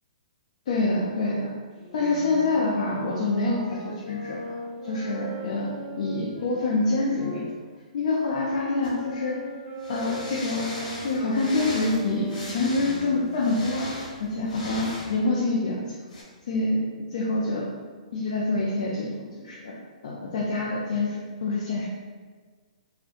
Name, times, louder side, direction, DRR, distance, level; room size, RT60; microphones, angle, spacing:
voice 1, 0.7-1.5 1.9-4.4 4.8-7.4 7.9-9.4 9.9-10.7 11.0-13.9 14.2-15.9 16.5-16.8 17.1-17.6 18.1-19.1 19.4-19.7 20.0-21.8, left 2 dB, 65° left, -5 dB, 0.5 m, -26 dB
sound 1, 1.7-7.4 8.1-13.5, equal, 5° right, 1.4 m, -39 dB
sound 2, 8.8-8.9 9.8-15.1 16.1-16.2, left 1 dB, 85° left, 1.1 m, -38 dB
2.5 x 2.2 x 3.6 m, 1.5 s
hypercardioid pair, 155°, 4 cm